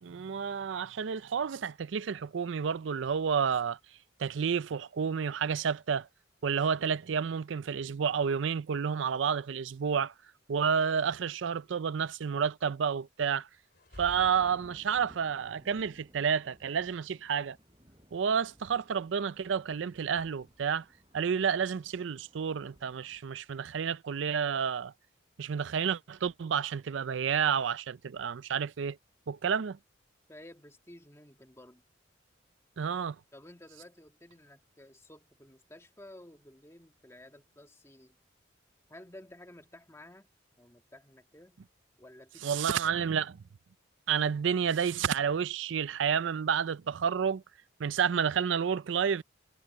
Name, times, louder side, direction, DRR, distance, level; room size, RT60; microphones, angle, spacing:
voice 1, 0.0-3.8 4.2-6.1 6.4-10.1 10.5-13.5 14.0-17.6 18.1-20.8 21.1-24.9 25.4-29.0 29.3-29.8 32.8-33.2 42.4-43.4 44.1-47.4 47.8-49.2, right 7 dB, 75° right, 0.4 m, -30 dB
sound 1, 13.7-15.3, equal, 55° left, 4.0 m, -50 dB
sound 2, 14.1-23.2, equal, 25° right, 6.2 m, -60 dB
voice 2, 30.3-31.8 33.3-38.2 38.9-41.6 42.0-43.1, left 1 dB, 15° left, 2.3 m, -53 dB
head